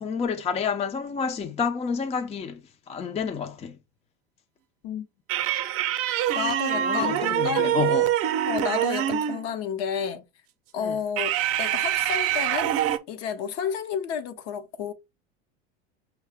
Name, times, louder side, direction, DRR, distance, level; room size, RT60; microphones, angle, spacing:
voice 1, 0.0-2.6 2.9-3.8 6.7-8.1 10.8-11.0, left 6 dB, 20° left, 0.6 m, -29 dB
sound 1, 5.3-9.5 11.2-13.0, right 11 dB, 40° right, 0.7 m, -25 dB
voice 2, 6.3-7.8 8.5-10.3 10.7-11.3 11.6-12.7 13.1-14.9, left 7 dB, 45° left, 0.9 m, -31 dB
5.5 x 2.2 x 3.5 m
hypercardioid pair, 100°, 35 cm